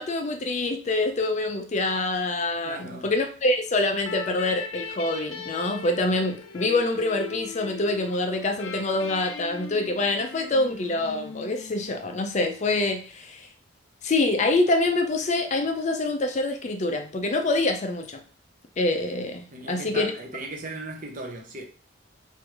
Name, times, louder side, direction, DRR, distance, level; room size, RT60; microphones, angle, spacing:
voice 1, 0.0-13.5 14.0-18.2 18.8-20.1, left 2 dB, 35° left, 0.4 m, -25 dB
voice 2, 2.6-3.1 19.5-21.6, right 2 dB, 40° right, 0.7 m, -37 dB
sound 1, 4.0-12.5, left 6 dB, 85° left, 0.6 m, -39 dB
3.2 x 2.6 x 4.5 m
head